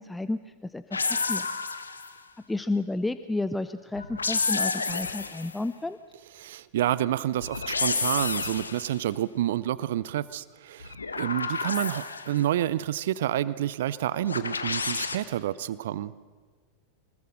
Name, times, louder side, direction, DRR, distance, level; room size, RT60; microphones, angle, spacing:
voice 1, 0.0-1.5 2.5-6.0, left 2 dB, 5° left, 12 dB, 0.6 m, -31 dB
sound 1, 0.9-2.2 4.0-5.6 7.4-9.0 10.8-12.5 14.3-15.2, left 4 dB, 75° left, 1.2 m, -30 dB
voice 2, 6.4-16.1, right 12 dB, 55° right, 18 dB, 0.5 m, -29 dB
24.0 x 20.5 x 6.4 m, 1.5 s
figure-of-eight pair, 90°, 0 cm